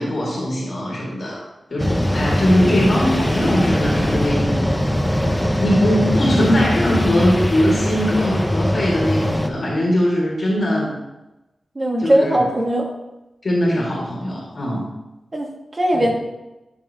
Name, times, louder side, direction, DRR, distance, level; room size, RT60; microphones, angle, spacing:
voice 1, 0.0-1.4 1.7-4.7 5.6-10.9 12.0-12.4 13.4-14.8 15.9-16.1, equal, 45° left, -4 dB, 1.8 m, -20 dB
sound 1, 1.8-9.5, equal, 5° left, 0.5 m, -21 dB
voice 2, 11.7-12.9 15.3-16.1, right 1 dB, 25° right, 1 dB, 1.2 m, -20 dB
10.5 x 5.9 x 2.8 m, 0.98 s
wide cardioid pair, 155°, 0 cm